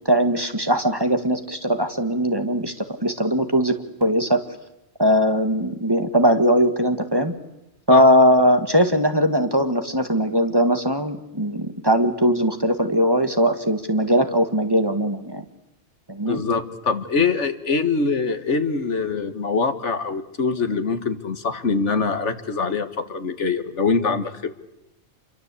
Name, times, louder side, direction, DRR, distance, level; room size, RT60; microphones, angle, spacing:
voice 1, 0.1-2.7 3.0-4.4 5.0-7.3 7.9-15.4 16.1-16.4, equal, 20° right, 8 dB, 1.8 m, -20 dB
voice 2, 16.3-24.5, left 4 dB, 85° left, 10 dB, 2.0 m, -23 dB
29.0 x 23.5 x 8.4 m, 0.91 s
omnidirectional pair, 1.2 m